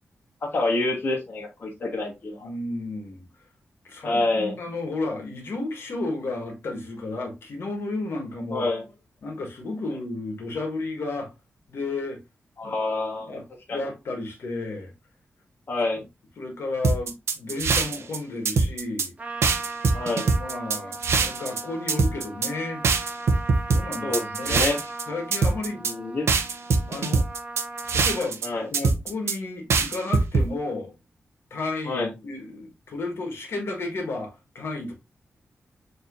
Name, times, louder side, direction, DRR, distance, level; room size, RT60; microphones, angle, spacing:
voice 1, 0.4-2.5 4.0-4.6 8.5-8.8 12.6-13.3 13.7-13.8 15.7-16.0 19.9-20.3 24.0-24.8 25.8-26.3 28.4-28.7 31.8-32.1, left 2 dB, 45° left, 1.1 m, -27 dB
voice 2, 2.4-3.2 3.8-8.7 9.2-11.3 11.7-12.2 12.6-12.7 13.1-13.4 13.7-14.9 16.4-19.1 20.3-22.8 23.7-24.8 25.1-25.9 26.3-26.4 26.9-27.2 27.9-28.4 28.7-30.9 31.5-34.9, left 2 dB, 65° left, 1.3 m, -32 dB
sound 1, 16.8-18.2 18.4-19.1 19.4-21.6 21.9-22.5 22.8-25.0 25.3-25.9 26.3-28.5 28.7-29.3 29.7-30.4, right 4 dB, 70° right, 0.6 m, -22 dB
Trumpet, 19.2-28.3, right 3 dB, 30° right, 0.9 m, -38 dB
6.4 x 2.8 x 2.5 m
wide cardioid pair, 170°, 5 cm